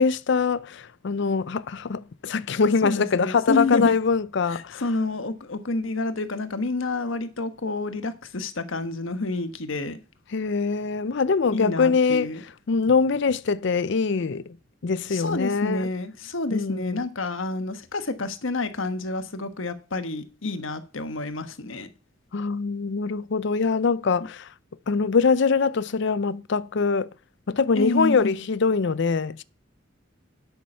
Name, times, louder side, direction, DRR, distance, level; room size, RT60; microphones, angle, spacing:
voice 1, 0.0-4.8 10.3-12.3 12.7-14.4 14.8-15.9 16.5-17.0 22.3-24.5 24.9-27.1 27.5-29.4, left 5 dB, 60° left, 0.5 m, -23 dB
voice 2, 2.8-3.9 4.5-10.0 11.5-12.4 15.1-21.9 27.7-28.3, left 2 dB, 85° left, 1.3 m, -29 dB
9.5 x 8.6 x 5.6 m
head